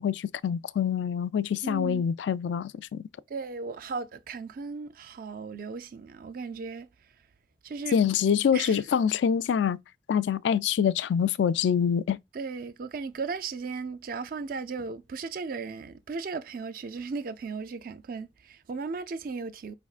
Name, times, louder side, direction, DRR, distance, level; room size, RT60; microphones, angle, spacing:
voice 1, 0.0-3.0 7.9-9.8 10.1-12.2, left 8 dB, 80° left, 0.3 m, -25 dB
voice 2, 1.6-2.1 3.3-7.2 7.6-8.0 8.5-8.8 12.3-19.7, right 4 dB, 50° right, 0.4 m, -36 dB
4.9 x 3.5 x 2.4 m
head